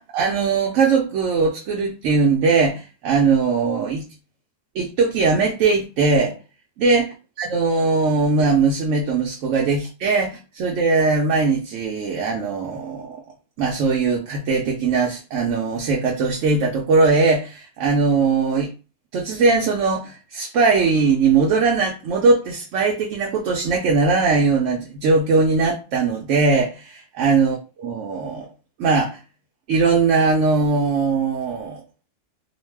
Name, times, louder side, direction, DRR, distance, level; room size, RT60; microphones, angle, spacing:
voice 1, 0.0-4.0 4.7-6.4 6.8-7.1 7.4-13.2 13.6-18.7 19.1-28.5 28.8-29.2 29.7-31.8, right 4 dB, 75° right, 0.9 m, -20 dB
2.5 x 2.1 x 3.2 m
omnidirectional pair, 1.3 m